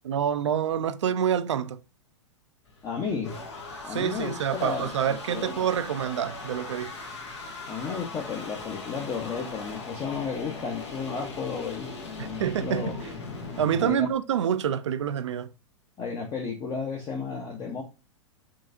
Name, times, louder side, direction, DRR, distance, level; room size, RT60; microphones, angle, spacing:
voice 1, 0.0-1.8 3.9-6.9 12.2-12.9 13.6-15.5, right 9 dB, 70° right, 0.4 m, -27 dB
sound 1, 2.7-13.9, left 3 dB, 70° left, 1.1 m, -39 dB
voice 2, 2.8-3.3 3.8-4.3 4.6-5.6 7.7-11.9 12.2-13.0 13.8-14.1 16.0-17.8, left 5 dB, 25° left, 0.7 m, -33 dB
3.8 x 3.2 x 2.5 m
figure-of-eight pair, 100°, 15 cm